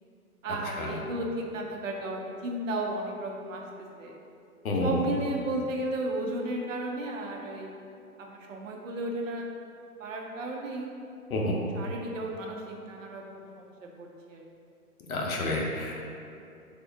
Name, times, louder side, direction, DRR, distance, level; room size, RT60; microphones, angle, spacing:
voice 1, 0.4-3.6 4.0-4.2 4.8-7.8 8.2-9.5 10.0-10.9 11.7-14.5, right 1 dB, 60° right, 0 dB, 0.6 m, -34 dB
voice 2, 4.6-4.9 11.3-11.5 15.1-16.0, left 2 dB, 65° left, -1 dB, 0.8 m, -29 dB
3.5 x 2.5 x 3.3 m, 2.5 s
hypercardioid pair, 140°, 46 cm